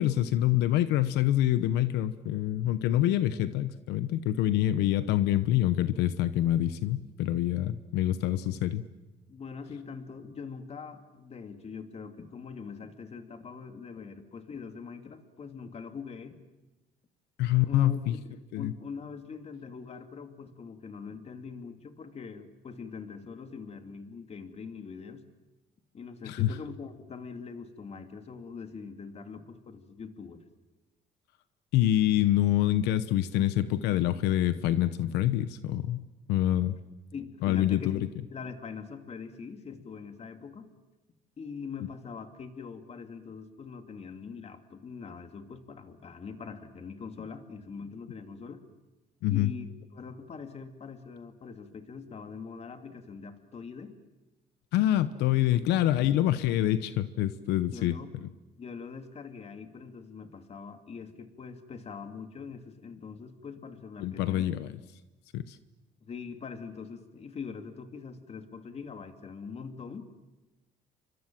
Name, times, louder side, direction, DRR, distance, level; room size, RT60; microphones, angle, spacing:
voice 1, 0.0-8.8 17.4-18.2 18.5-18.7 26.3-26.5 31.7-36.0 36.3-36.8 37.4-38.0 49.2-49.5 54.7-58.3 64.0-64.7 65.3-65.6, left 13 dB, 90° left, 12 dB, 1.0 m, -26 dB
voice 2, 9.3-16.4 17.7-25.2 25.9-30.4 37.1-40.7 41.4-48.6 49.3-49.7 49.9-53.9 55.5-56.0 57.7-58.1 58.6-64.5 66.0-70.0, left 5 dB, 40° left, 6 dB, 2.8 m, -43 dB
30.0 x 25.0 x 7.6 m, 1.1 s
cardioid pair, 110°, 17 cm